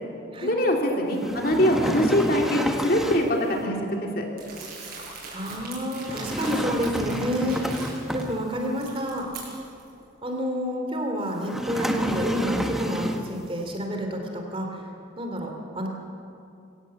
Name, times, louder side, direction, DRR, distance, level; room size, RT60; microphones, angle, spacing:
voice 1, 0.4-4.2, equal, 50° left, 1 dB, 3.1 m, -23 dB
sound 1, 1.2-3.4 6.0-8.7 11.4-13.4, equal, ahead, 1.2 m, -30 dB
Crumpling crinkling, 4.4-8.2 8.6-9.9, right 4 dB, 50° right, 7.3 m, -41 dB
voice 2, 5.3-9.3 10.2-14.8 15.2-15.9, equal, 30° right, 3 dB, 2.9 m, -29 dB
23.5 x 17.5 x 7.6 m, 2.6 s
head